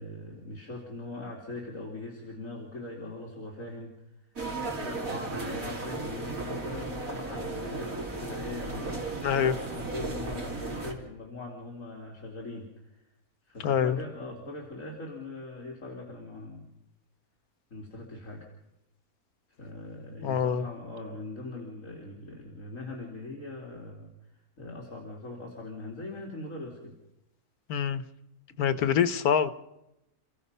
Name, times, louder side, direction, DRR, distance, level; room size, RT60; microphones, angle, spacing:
voice 1, 0.0-3.9 4.8-9.3 9.7-13.0 13.4-16.7 17.7-18.5 19.6-24.3 24.6-27.0 28.5-28.9, left 2 dB, 60° left, 0 dB, 3.4 m, -41 dB
sound 1, 4.4-10.9, right 3 dB, 65° right, 3.7 m, -35 dB
voice 2, 9.2-9.6 13.6-14.0 20.2-20.6 27.7-28.0 28.6-29.5, left 8 dB, 90° left, 13 dB, 1.5 m, -25 dB
30.0 x 16.0 x 5.5 m, 0.88 s
omnidirectional pair, 1.5 m